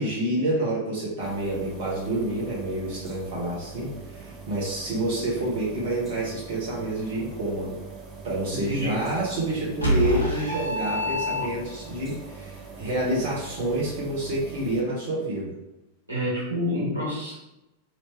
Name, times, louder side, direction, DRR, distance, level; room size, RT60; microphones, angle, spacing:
voice 1, 0.0-7.8 8.2-15.5, right 1 dB, 50° right, -5 dB, 1.2 m, -28 dB
sound 1, 1.2-14.8, right 4 dB, 20° right, 1.0 m, -42 dB
voice 2, 8.6-9.0 16.1-17.3, left 1 dB, 90° right, -7 dB, 1.3 m, -28 dB
sound 2, 9.8-11.9, left 1 dB, 80° left, 0.8 m, -26 dB
3.0 x 3.0 x 3.1 m, 0.93 s
figure-of-eight pair, 90°, 0 cm